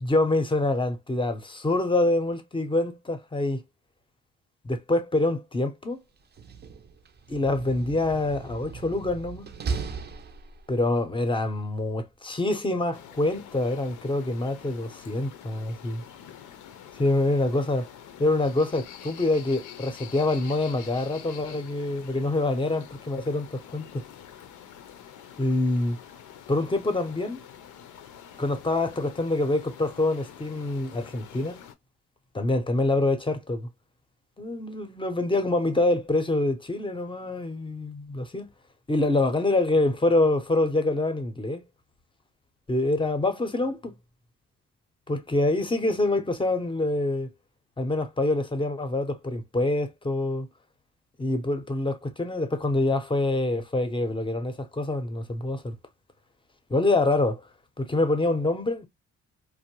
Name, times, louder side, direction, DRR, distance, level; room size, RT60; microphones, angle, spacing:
voice 1, 0.0-3.6 4.6-6.0 7.3-9.5 10.7-16.0 16.9-17.9 18.2-24.0 25.4-26.0 26.5-27.4 28.4-31.6 32.3-33.7 34.4-38.5 38.9-41.6 42.7-44.0 45.1-47.3 47.8-50.5 51.2-55.8 56.7-57.4 57.8-58.9, left 2 dB, 15° left, 0.6 m, -26 dB
Slam, 6.2-10.9, right 5 dB, 35° right, 0.5 m, -37 dB
sound 1, 12.9-31.7, left 9 dB, 80° left, 0.6 m, -46 dB
2.6 x 2.1 x 3.0 m
cardioid pair, 90°, 30 cm